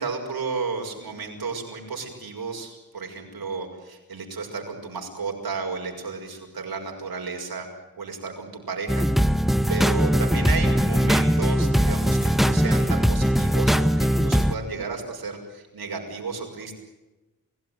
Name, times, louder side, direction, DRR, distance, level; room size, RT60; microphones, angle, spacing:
voice 1, 0.0-7.7 8.0-9.1 9.7-16.7, right 4 dB, 80° right, 2 dB, 6.3 m, -33 dB
sound 1, 8.9-14.5, equal, ahead, 1.1 m, -20 dB
29.0 x 17.0 x 9.3 m, 1.1 s
wide cardioid pair, 105°, 36 cm